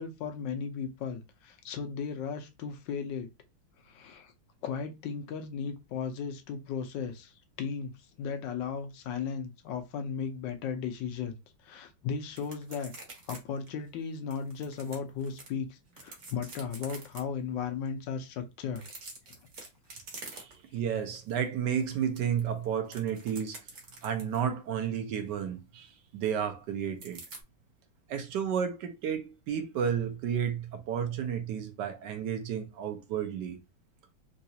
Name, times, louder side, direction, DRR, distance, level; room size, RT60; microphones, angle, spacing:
voice 1, 0.0-3.3 3.8-4.3 4.6-12.9 13.3-18.8, left 6 dB, 70° left, 1.3 m, -36 dB
sound 1, 12.3-13.4 13.7-13.8 14.3-15.5 15.9-17.2 18.7-20.8 21.1-21.4 21.7-24.5 27.0-27.4, right 3 dB, 45° right, 1.1 m, -47 dB
voice 2, 20.3-23.6 24.0-27.2 28.1-33.6, right 8 dB, 70° right, 1.2 m, -32 dB
3.9 x 2.4 x 2.7 m
omnidirectional pair, 2.2 m